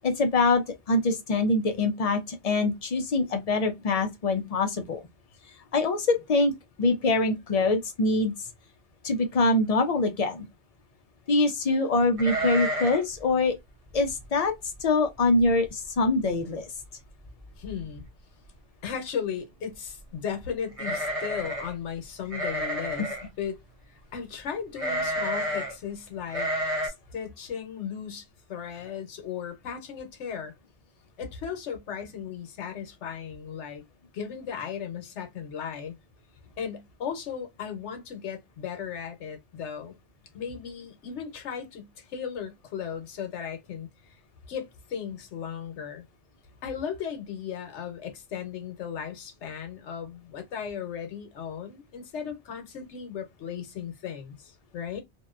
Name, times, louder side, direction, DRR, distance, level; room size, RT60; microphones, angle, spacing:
voice 1, 0.0-5.0 5.7-6.5 6.8-8.3 9.0-10.5 11.3-13.5 13.9-14.5 14.8-16.6, left 2 dB, 55° left, 0.4 m, -24 dB
sound 1, 12.2-13.1 13.4-13.5 14.0-14.2 14.8-14.9 15.2-15.7 16.0-16.1 17.2-17.3 17.6-18.1 20.7-21.7 22.3-23.3 24.8-25.7 26.3-26.9, right 1 dB, 35° right, 0.6 m, -30 dB
voice 2, 17.6-18.0 18.8-23.6 23.9-26.5 26.8-30.5 31.2-33.8 34.1-35.9 36.6-39.9 40.3-44.1 44.5-46.0 46.6-55.0, left 7 dB, 75° left, 1.1 m, -36 dB
2.6 x 2.1 x 2.3 m
omnidirectional pair, 1.2 m